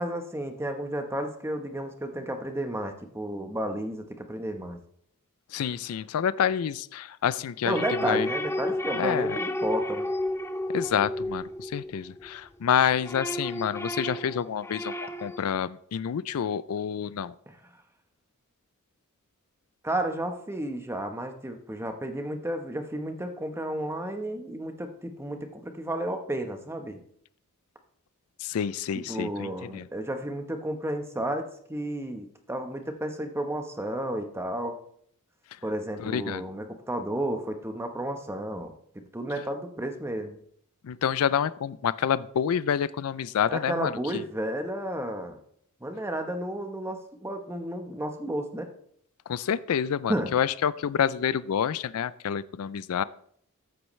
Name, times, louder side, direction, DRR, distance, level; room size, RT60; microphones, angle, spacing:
voice 1, 0.0-4.8 7.6-10.1 17.5-17.6 19.8-27.0 28.9-34.8 35.6-40.4 43.5-45.4 45.8-48.7 50.1-50.3, right 1 dB, 10° right, 6 dB, 1.0 m, -32 dB
voice 2, 5.5-8.3 9.0-9.4 10.7-14.9 15.2-17.3 28.4-29.9 36.0-36.5 40.8-44.2 49.3-53.0, left 8 dB, 75° left, 17 dB, 0.4 m, -28 dB
sound 1, 7.7-12.3 12.7-15.5, left 1 dB, 10° left, 0.4 m, -32 dB
14.0 x 7.8 x 3.2 m, 0.65 s
head